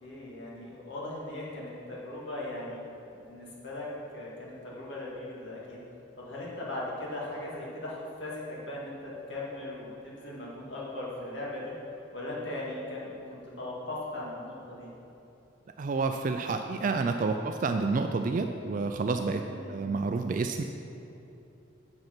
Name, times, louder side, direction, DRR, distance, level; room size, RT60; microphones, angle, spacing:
voice 1, 0.0-2.8 3.1-3.9 4.1-5.8 6.2-11.7 12.1-14.9 19.4-19.8, left 1 dB, 65° left, -5 dB, 2.3 m, -39 dB
voice 2, 15.8-19.4 19.7-20.6, right 4 dB, 45° right, 6 dB, 0.3 m, -29 dB
7.8 x 7.1 x 5.9 m, 2.9 s
head